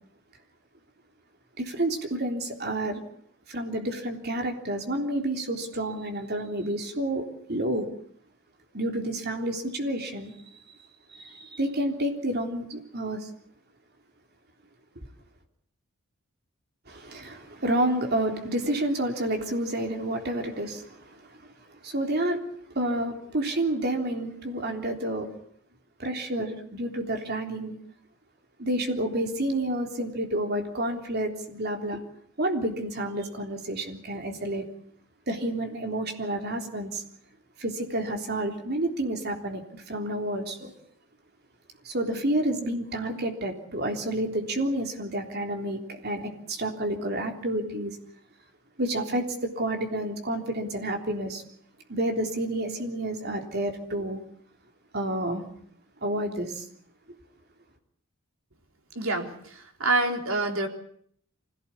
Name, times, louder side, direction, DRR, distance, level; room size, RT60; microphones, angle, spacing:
voice 1, 1.6-3.0 3.5-7.9 8.7-10.3 11.1-13.3 16.9-21.4 21.7-22.4 22.7-25.3 26.0-27.8 28.6-32.0 32.4-34.7 35.3-37.0 37.6-40.7 41.8-48.0 48.8-51.4 51.9-54.2 54.9-55.4 56.0-56.7, right 1 dB, 50° right, 4 dB, 3.6 m, -29 dB
voice 2, 59.0-60.7, right 2 dB, 70° right, 4 dB, 3.8 m, -27 dB
25.0 x 17.0 x 8.5 m, 0.64 s
head